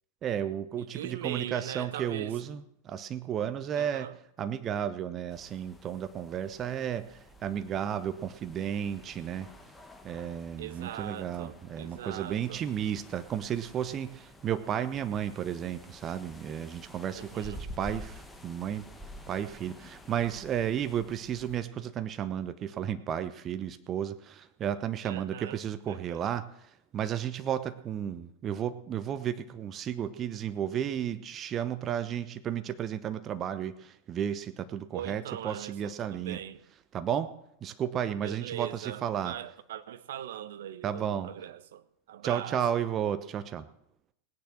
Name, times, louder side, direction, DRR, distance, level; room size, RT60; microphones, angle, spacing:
voice 1, 0.2-4.1 4.4-9.5 10.0-18.9 19.3-36.4 36.9-37.3 37.6-39.3 40.8-41.3 42.2-43.7, right 9 dB, 30° right, 0.9 m, -33 dB
voice 2, 0.9-2.4 3.8-4.1 10.6-12.6 17.2-17.6 25.0-25.6 25.9-26.2 34.9-36.6 38.2-42.6, right 11 dB, 60° right, 0.9 m, -41 dB
sound 1, 5.3-21.6, left 1 dB, 10° left, 1.5 m, -50 dB
18.0 x 10.0 x 6.3 m
figure-of-eight pair, 90°, 0 cm